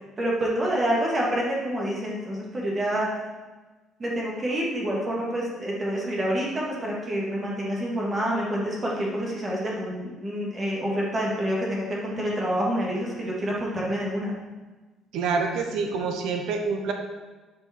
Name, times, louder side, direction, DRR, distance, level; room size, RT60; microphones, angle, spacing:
voice 1, 0.2-3.1 4.0-14.4, equal, 20° right, -4 dB, 1.9 m, -27 dB
voice 2, 15.1-16.9, right 4 dB, 70° right, 4 dB, 1.1 m, -27 dB
10.5 x 5.3 x 4.4 m, 1.3 s
cardioid pair, 170°, 0 cm